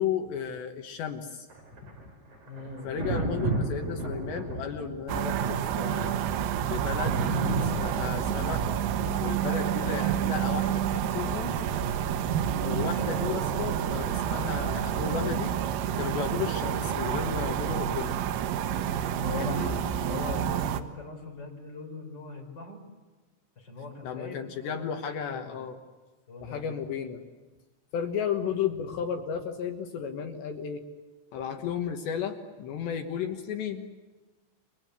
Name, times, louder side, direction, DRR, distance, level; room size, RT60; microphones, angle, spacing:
voice 1, 0.0-1.5 1.8-1.9 2.8-6.2 6.6-7.2 7.6-8.7 9.2-11.6 12.6-15.5 16.0-18.1 19.3-19.7 24.0-25.8 26.4-27.2 27.9-30.8 31.3-33.9, left 7 dB, 70° left, 5 dB, 3.2 m, -33 dB
Thunder, 1.5-15.2 16.8-17.0, right 2 dB, 35° right, 6.4 m, -36 dB
voice 2, 2.5-2.9 18.9-22.8 23.6-25.0 25.3-25.5 26.3-26.6, left 3 dB, 20° left, 2 dB, 4.4 m, -41 dB
sound 1, 5.1-20.8, right 9 dB, 85° right, 3.9 m, -29 dB
30.0 x 24.0 x 8.1 m, 1.3 s
omnidirectional pair, 5.9 m